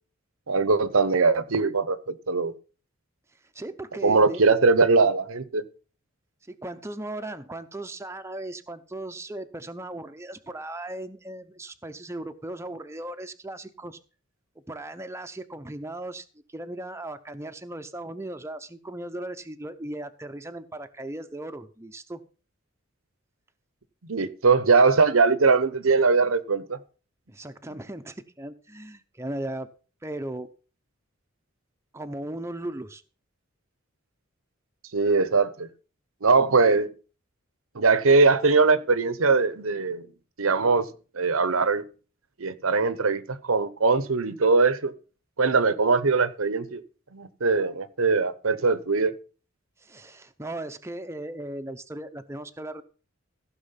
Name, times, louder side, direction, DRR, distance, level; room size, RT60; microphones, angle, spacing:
voice 1, 0.5-2.5 4.0-5.6 24.1-26.8 34.9-35.7 36.2-36.9 37.7-40.1 40.4-40.9 41.1-41.8 42.4-44.9 45.4-46.8 47.1-49.1, right 4 dB, 85° right, 1.0 m, -21 dB
voice 2, 3.5-4.4 6.5-14.0 14.7-22.2 27.3-29.7 30.0-30.5 31.9-33.0 49.8-52.8, right 1 dB, 15° right, 0.7 m, -37 dB
15.0 x 6.2 x 5.7 m
head